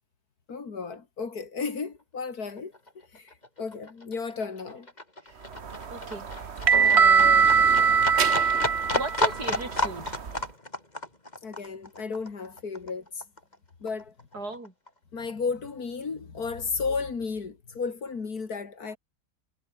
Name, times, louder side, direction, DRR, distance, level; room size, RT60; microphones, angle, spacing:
voice 1, 0.5-2.7 3.1-4.9 5.5-5.6 11.4-13.2 13.8-14.1 15.1-19.0, left 5 dB, 65° left, 2.9 m, -33 dB
Livestock farm animals working animals, 2.2-2.3 2.6-13.6 13.9-14.9 15.2-15.3, left 1 dB, 25° left, 4.3 m, -33 dB
sound 1, 5.6-10.4, right 6 dB, 45° right, 1.5 m, -22 dB
voice 2, 5.9-6.5 6.8-7.5 8.9-10.2 14.3-14.7, right 2 dB, 75° right, 6.5 m, -36 dB
omnidirectional pair, 1.7 m